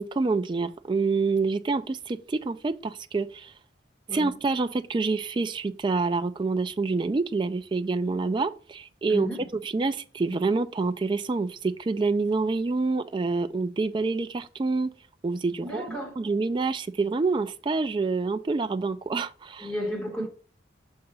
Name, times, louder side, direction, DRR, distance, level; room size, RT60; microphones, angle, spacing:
voice 1, 0.0-3.5 4.1-9.3 9.7-14.9 15.2-19.7, right 3 dB, 25° right, 0.3 m, -27 dB
voice 2, 9.1-9.5 15.6-16.2 19.6-20.3, equal, 5° left, 1.7 m, -33 dB
6.5 x 2.9 x 5.5 m
head